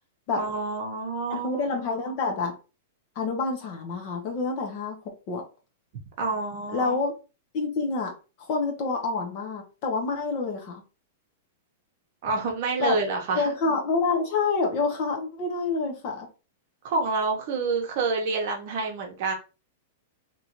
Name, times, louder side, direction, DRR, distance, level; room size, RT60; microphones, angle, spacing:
voice 1, 0.4-1.6 6.2-7.0 12.2-13.5 16.8-19.3, right 4 dB, 45° right, 2 dB, 0.9 m, -28 dB
voice 2, 1.3-2.5 3.1-5.0 5.3-5.4 6.7-7.1 7.5-8.1 8.4-10.8 12.8-13.0 13.3-16.3, left 4 dB, 40° left, 2 dB, 0.9 m, -27 dB
3.0 x 2.6 x 2.9 m, 0.31 s
supercardioid pair, 160°, 0 cm